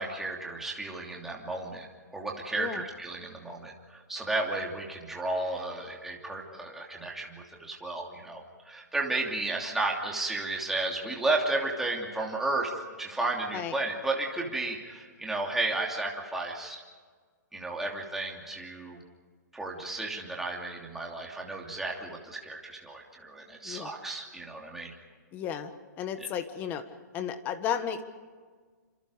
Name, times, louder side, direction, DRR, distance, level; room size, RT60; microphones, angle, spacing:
voice 1, 0.0-12.7 13.0-16.8 17.5-19.0 19.5-24.9 26.2-26.3, right 2 dB, 5° right, -2 dB, 3.0 m, -33 dB
voice 2, 25.3-25.7 26.0-26.8 27.1-28.0, left 8 dB, 20° left, 10 dB, 1.4 m, -33 dB
27.5 x 27.0 x 5.1 m, 1.5 s
hypercardioid pair, 165°, 10 cm